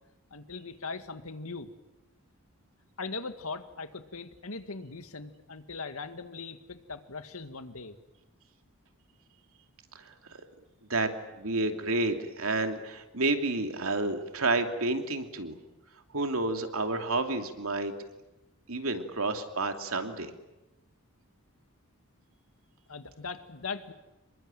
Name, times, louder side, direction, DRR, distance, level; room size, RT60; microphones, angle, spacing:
voice 1, 0.3-1.7 3.0-8.0 22.9-23.9, left 4 dB, 75° left, 9 dB, 2.0 m, -40 dB
voice 2, 9.9-10.4 10.9-11.1 11.4-15.5 16.1-17.9 18.7-20.3, right 2 dB, 75° right, 5 dB, 2.8 m, -30 dB
27.5 x 22.5 x 9.1 m, 0.98 s
head